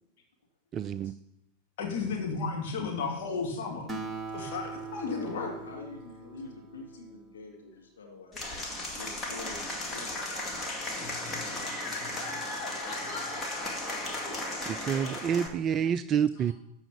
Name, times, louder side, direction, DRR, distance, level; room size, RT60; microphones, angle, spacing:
voice 1, 0.7-1.1 14.7-16.5, right 8 dB, 30° right, 14 dB, 0.3 m, -28 dB
voice 2, 1.8-3.9 4.3-5.5, left 4 dB, 50° left, 0 dB, 2.2 m, -33 dB
Acoustic guitar, 3.9-7.6, right 3 dB, 10° right, 1.4 m, -41 dB
voice 3, 4.9-8.4 9.0-10.1, left 3 dB, 65° left, 1 dB, 1.7 m, -45 dB
Applause / Crowd, 8.3-15.5, left 2 dB, 20° left, 2.1 m, -35 dB
13.0 x 4.9 x 6.8 m, 0.89 s
figure-of-eight pair, 90°, 0 cm